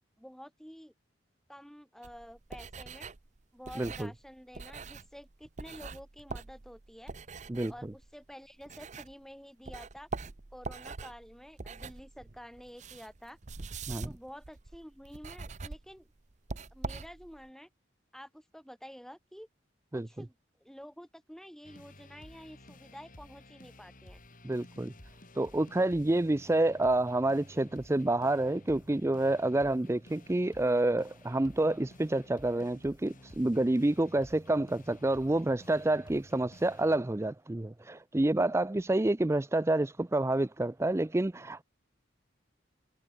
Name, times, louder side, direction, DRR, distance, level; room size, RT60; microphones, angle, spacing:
voice 1, 0.2-0.9 1.5-3.1 3.5-7.1 7.7-10.1 10.5-13.4 14.0-16.1 16.7-17.7 18.1-19.5 19.9-20.4 20.6-24.2, equal, ahead, 5.9 m, -50 dB
sound 1, 2.0-9.3 9.6-17.5, right 4 dB, 40° right, 0.8 m, -44 dB
voice 2, 3.8-4.1 7.5-7.7 13.9-14.1 19.9-20.1 24.4-24.9 25.3-41.6, right 2 dB, 15° right, 0.4 m, -28 dB
sound 2, 21.6-37.0, left 1 dB, 45° left, 7.4 m, -54 dB
head